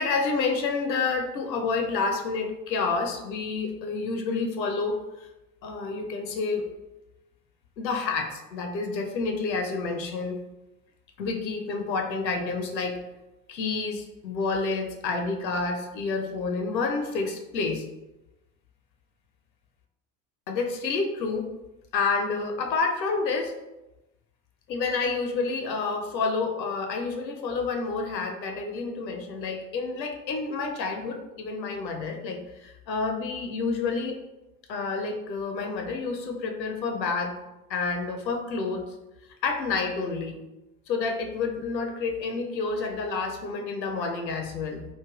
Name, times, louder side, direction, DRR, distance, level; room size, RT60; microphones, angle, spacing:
voice 1, 0.0-5.3 5.6-6.7 7.8-10.4 11.2-13.0 13.5-17.8 20.5-21.5 21.9-23.5 24.7-34.2 34.7-37.4 37.7-38.9 39.4-40.4 40.9-44.8, left 4 dB, 80° left, 3 dB, 0.6 m, -29 dB
3.1 x 2.2 x 2.3 m, 0.99 s
figure-of-eight pair, 80°, 50 cm